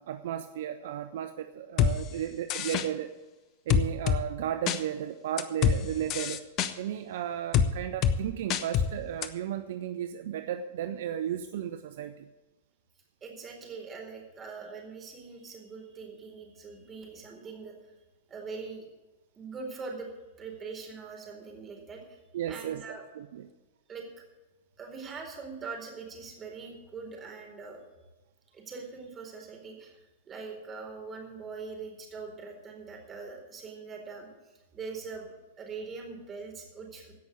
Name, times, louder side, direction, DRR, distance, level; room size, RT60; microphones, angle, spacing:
voice 1, 0.0-3.1 3.7-6.4 6.8-12.3 22.3-23.5, right 10 dB, 65° right, 10 dB, 0.8 m, -34 dB
sound 1, 1.8-1.9 2.5-2.9 3.7-4.2 4.7-4.8 5.4-5.8 6.1-6.7 7.5-7.7 8.0-8.2 8.5-8.9 9.2-9.3, left 8 dB, 40° left, 1.0 m, -24 dB
voice 2, 13.2-17.7 18.3-18.9 19.3-20.1 20.4-22.2 22.5-23.0 23.9-24.0 24.8-27.8 28.5-30.0 30.3-34.3 34.7-37.1, right 4 dB, 25° right, 2 dB, 4.2 m, -42 dB
16.5 x 6.2 x 8.4 m, 1.1 s
hypercardioid pair, 110°, 0 cm